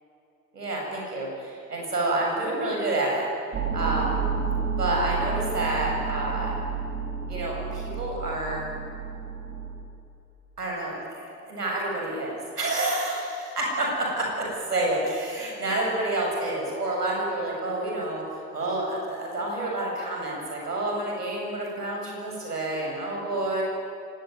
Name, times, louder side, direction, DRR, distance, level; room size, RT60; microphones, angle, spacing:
voice 1, 0.5-3.2 3.7-4.2 4.7-6.6 7.3-8.6 10.6-23.6, right 2 dB, 80° right, -2 dB, 8.0 m, -29 dB
sound 1, 3.5-9.8, right 6 dB, 25° right, 4.6 m, -30 dB
24.5 x 20.5 x 9.6 m, 2.7 s
figure-of-eight pair, 80°, 47 cm